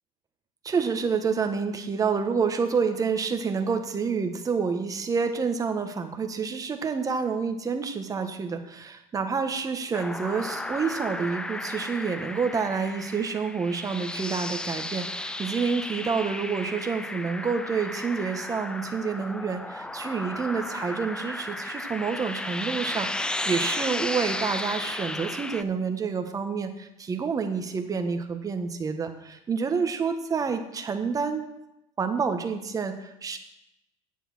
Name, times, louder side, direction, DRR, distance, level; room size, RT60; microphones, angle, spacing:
voice 1, 0.6-31.5 32.0-33.4, right 5 dB, 25° right, 7 dB, 1.4 m, -28 dB
sound 1, 9.9-25.6, left 2 dB, 5° left, 0.5 m, -34 dB
9.7 x 7.9 x 6.2 m, 0.88 s
supercardioid pair, 110°, 14 cm